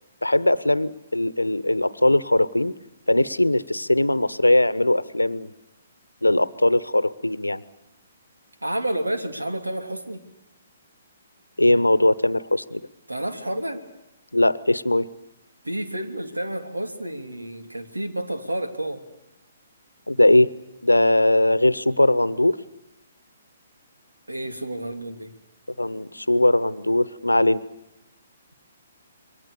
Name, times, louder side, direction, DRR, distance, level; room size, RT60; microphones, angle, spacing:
voice 1, 0.2-2.7 3.1-5.5 6.2-7.6 11.6-12.8 14.3-15.1 20.1-20.5 20.8-22.6 25.8-27.6, left 1 dB, 85° left, 18 dB, 1.0 m, -20 dB
voice 2, 8.6-10.2 13.1-13.8 15.6-19.0 24.3-25.3, right 1 dB, 80° right, 6 dB, 3.0 m, -30 dB
27.5 x 23.5 x 6.9 m, 0.93 s
figure-of-eight pair, 130°, 0 cm